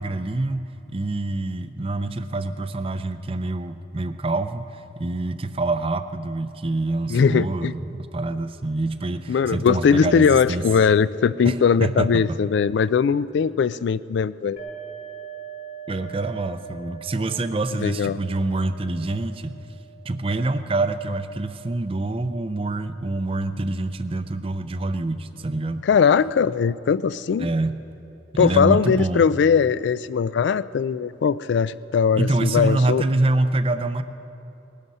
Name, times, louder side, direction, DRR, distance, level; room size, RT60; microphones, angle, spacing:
voice 1, 0.0-10.6 11.4-12.4 15.9-19.5 20.0-25.8 27.4-27.7 28.3-29.2 32.2-34.0, right 2 dB, 30° right, 11 dB, 0.5 m, -26 dB
voice 2, 7.1-7.7 9.3-14.6 17.8-18.2 25.8-27.5 28.4-33.0, left 6 dB, 65° left, 17 dB, 0.3 m, -20 dB
sound 1, 14.6-22.0, right 8 dB, 50° left, 3.1 m, -42 dB
19.5 x 11.5 x 5.4 m, 2.9 s
head